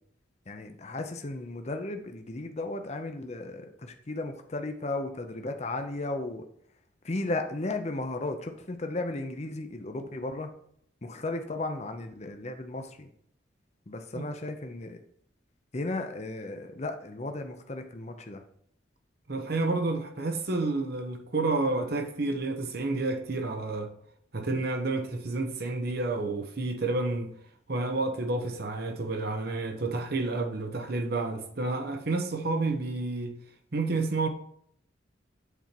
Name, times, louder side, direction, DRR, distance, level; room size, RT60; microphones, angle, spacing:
voice 1, 0.5-6.4 7.0-10.5 11.0-13.1 13.9-15.0 15.7-18.4, left 2 dB, 35° left, 0.7 m, -35 dB
voice 2, 19.3-23.9 24.3-27.3 27.7-33.3 33.7-34.3, right 3 dB, 55° right, 0.9 m, -30 dB
8.1 x 4.4 x 4.5 m
head